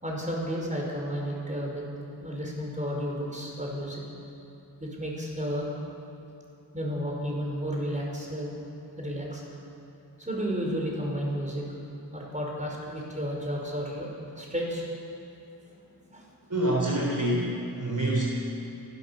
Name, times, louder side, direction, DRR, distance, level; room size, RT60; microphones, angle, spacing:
voice 1, 0.0-1.8 2.2-4.0 4.8-5.7 6.7-8.5 9.0-9.4 10.2-11.6 12.1-14.9 16.1-16.2, equal, 15° right, -2 dB, 5.3 m, -32 dB
voice 2, 16.5-18.2, right 1 dB, 45° right, -3 dB, 3.8 m, -26 dB
29.0 x 12.5 x 7.1 m, 2.8 s
wide cardioid pair, 60°, 41 cm